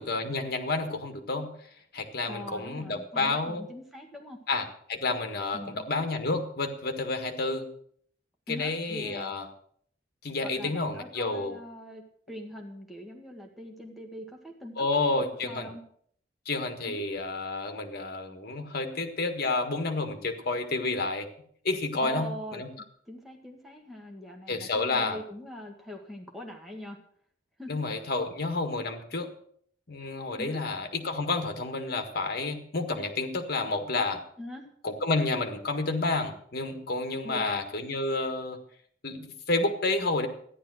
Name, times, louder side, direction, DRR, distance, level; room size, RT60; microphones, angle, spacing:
voice 1, 0.0-1.5 1.9-3.7 4.5-7.7 8.5-9.4 10.2-11.5 14.8-15.7 16.4-21.3 21.6-22.7 24.5-25.2 27.7-29.3 29.9-34.2 34.8-38.6 39.0-40.3, left 3 dB, 55° left, 7 dB, 1.7 m, -30 dB
voice 2, 2.3-4.4 5.5-5.8 8.5-9.4 10.5-15.1 15.4-15.8 16.9-17.0 22.0-27.0 27.6-27.8 30.4-30.6 34.4-34.7 37.2-37.6, equal, ahead, 0 dB, 1.8 m, -42 dB
13.5 x 11.0 x 6.3 m, 0.62 s
head